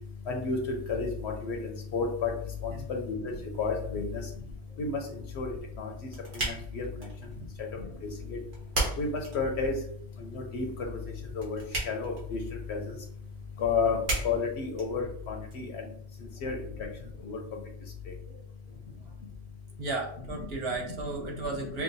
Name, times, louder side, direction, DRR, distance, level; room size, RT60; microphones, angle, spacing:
voice 1, 0.3-2.3 2.6-4.3 4.8-5.9 6.3-7.1 7.6-8.4 9.0-9.8 10.2-11.0 11.3-12.4 12.7-13.0 13.6-15.9 16.4-16.9 17.2-17.4 20.3-20.5 20.9-21.0 21.5-21.7, left 4 dB, 65° left, 2 dB, 0.8 m, -32 dB
sound 1, 5.6-15.6, right 2 dB, 80° right, 1.8 m, -38 dB
voice 2, 19.8-21.8, right 3 dB, 55° right, 0 dB, 0.9 m, -34 dB
5.9 x 2.1 x 2.6 m, 0.65 s
omnidirectional pair, 1.4 m